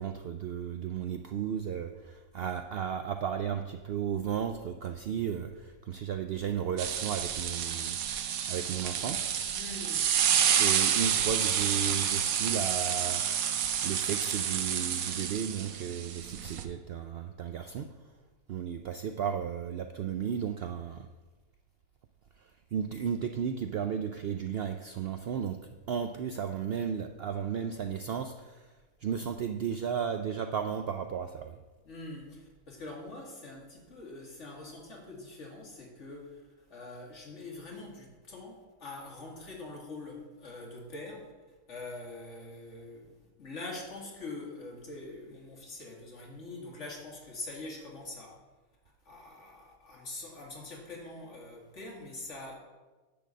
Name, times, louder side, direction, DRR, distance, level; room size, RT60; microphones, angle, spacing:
voice 1, 0.0-9.2 10.6-13.2 13.8-18.1 18.5-21.1 22.4-25.6 25.9-28.7 29.0-31.6, right 8 dB, 90° right, 6 dB, 0.5 m, -34 dB
sound 1, 6.8-16.6, right 8 dB, 70° right, 1.1 m, -29 dB
voice 2, 9.5-10.1 10.4-10.6 31.8-36.4 36.7-41.3 41.7-48.4 49.0-52.6, left 2 dB, 50° left, -1 dB, 2.2 m, -44 dB
10.5 x 4.0 x 7.4 m, 1.2 s
omnidirectional pair, 1.6 m